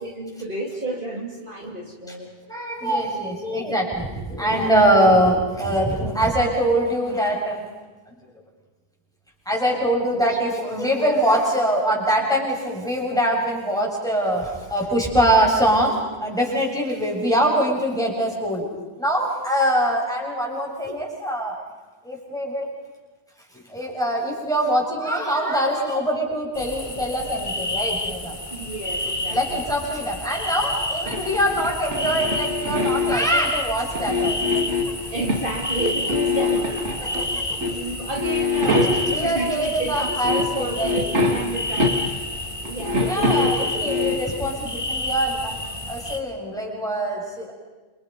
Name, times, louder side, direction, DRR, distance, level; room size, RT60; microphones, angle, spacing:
voice 1, 0.0-2.3 4.4-4.7 28.5-29.7 35.1-42.0 42.6-44.7 45.6-45.7, right 1 dB, 45° right, -1 dB, 3.1 m, -31 dB
voice 2, 2.5-7.7 9.5-18.7 19.0-21.6 22.0-22.7 23.7-28.4 29.3-34.7 37.4-37.8 38.8-41.0 43.1-45.6 45.9-47.5, right 1 dB, 5° left, -2 dB, 7.2 m, -23 dB
sound 1, 26.5-46.2, left 1 dB, 25° left, 2.0 m, -30 dB
sound 2, 31.1-33.4 33.9-35.5 35.8-37.3 37.6-37.8 38.2-39.4 39.9-40.0 40.2-42.4 42.7-44.3, left 2 dB, 70° right, 2.5 m, -24 dB
29.5 x 28.0 x 5.4 m, 1.2 s
omnidirectional pair, 1.2 m